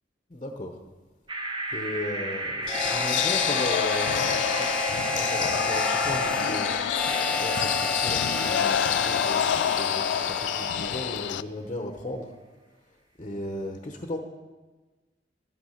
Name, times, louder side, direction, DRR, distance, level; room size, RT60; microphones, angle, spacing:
voice 1, 0.3-0.7 1.7-4.7 5.1-6.7 7.4-12.3 13.2-14.2, left 1 dB, 30° left, 4 dB, 0.9 m, -36 dB
sound 1, 1.3-9.5, right 2 dB, 25° right, 1.2 m, -36 dB
sound 2, 2.7-11.4, left 9 dB, 80° left, 0.3 m, -27 dB
Harmonica, 2.7-11.3, left 1 dB, 5° left, 0.7 m, -31 dB
13.0 x 9.3 x 5.7 m, 1.3 s
head